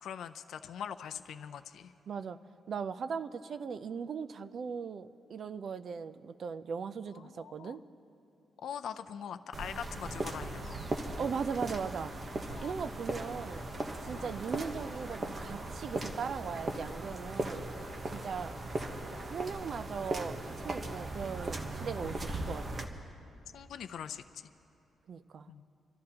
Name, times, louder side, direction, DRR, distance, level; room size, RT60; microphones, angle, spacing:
voice 1, 0.0-1.9 7.1-7.8 8.6-10.8 12.5-12.8 14.1-14.3 23.5-24.5 25.5-25.7, left 8 dB, 70° left, 10 dB, 0.4 m, -43 dB
voice 2, 2.1-2.4 2.7-7.8 11.2-12.1 12.6-13.6 14.0-17.6 18.0-18.6 19.3-22.9 25.1-25.5, right 6 dB, 50° right, 12 dB, 0.5 m, -38 dB
sound 1, 9.5-22.8, right 2 dB, 30° right, 1.0 m, -38 dB
26.5 x 13.5 x 2.9 m, 3.0 s
wide cardioid pair, 150°, 0 cm